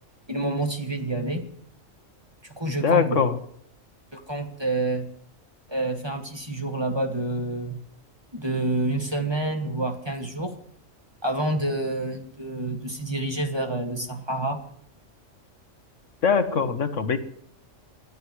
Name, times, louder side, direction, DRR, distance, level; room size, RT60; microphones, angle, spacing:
voice 1, 0.3-1.5 2.5-3.3 4.1-5.1 5.7-7.8 8.3-10.5 11.2-14.6 16.5-16.7, right 2 dB, 20° right, 2 dB, 2.0 m, -28 dB
voice 2, 2.8-3.4 16.2-17.2, left 6 dB, 70° left, 9 dB, 1.5 m, -22 dB
29.5 x 12.0 x 3.2 m, 0.69 s
omnidirectional pair, 1.4 m